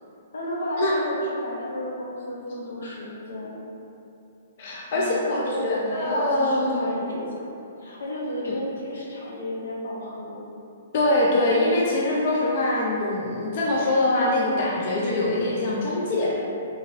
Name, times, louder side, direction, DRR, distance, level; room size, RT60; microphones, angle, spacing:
voice 1, 0.3-3.5 4.9-7.5 7.8-10.4, left 1 dB, 85° left, -4 dB, 0.7 m, -32 dB
voice 2, 4.6-6.9 10.9-16.4, left 1 dB, 45° left, -4 dB, 0.4 m, -23 dB
2.8 x 2.5 x 3.0 m, 2.8 s
hypercardioid pair, 160°, 0 cm